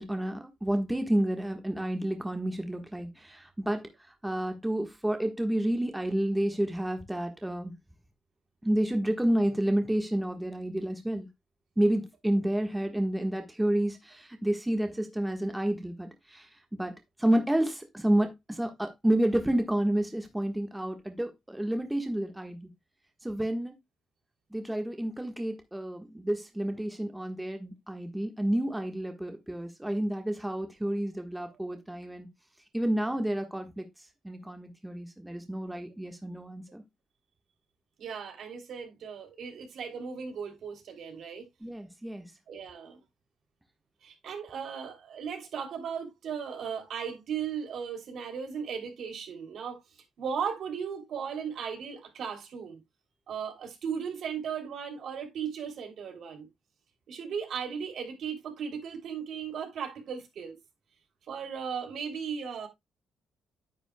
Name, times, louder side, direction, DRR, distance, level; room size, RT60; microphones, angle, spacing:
voice 1, 0.0-3.8 4.2-7.7 8.6-11.3 11.8-16.5 16.7-22.7 23.2-23.7 24.5-32.3 32.7-33.8 34.2-36.8 41.6-42.2, right 1 dB, 5° right, 1.4 m, -30 dB
voice 2, 38.0-41.4 42.5-43.0 44.0-49.8 50.2-52.8 53.3-56.5 57.1-60.5 61.3-62.7, right 7 dB, 65° right, 3.0 m, -36 dB
9.6 x 8.9 x 2.2 m
cardioid pair, 115°, 0 cm